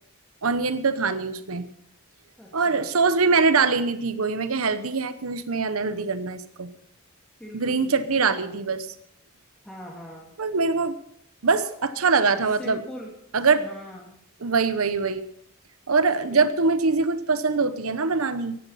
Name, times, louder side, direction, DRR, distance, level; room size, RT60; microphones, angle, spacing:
voice 1, 0.4-1.7 2.5-6.7 7.5-8.9 10.4-11.0 11.4-12.8 13.3-13.6 14.4-15.2 15.9-18.6, right 4 dB, 85° right, 12 dB, 1.0 m, -23 dB
voice 2, 2.4-2.9 7.4-8.2 9.6-10.3 12.6-13.1 13.6-14.1 16.2-16.5, equal, 5° left, -3 dB, 2.5 m, -41 dB
16.0 x 11.0 x 5.7 m, 0.72 s
head